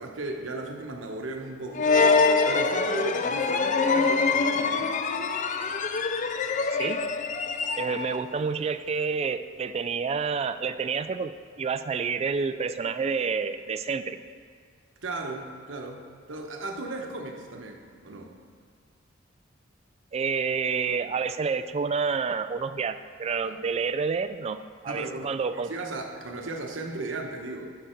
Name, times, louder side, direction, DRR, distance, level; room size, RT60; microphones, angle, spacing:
voice 1, 0.0-1.9 2.5-4.9 15.0-18.3 23.4-23.6 24.8-27.7, right 2 dB, 75° right, 2 dB, 1.0 m, -36 dB
sound 1, 1.8-8.2, left 4 dB, 40° left, 0.4 m, -24 dB
voice 2, 7.8-11.3 11.6-14.2 20.1-24.6 24.8-25.7, right 5 dB, 35° right, 11 dB, 0.3 m, -29 dB
11.0 x 5.2 x 4.4 m, 2.1 s
head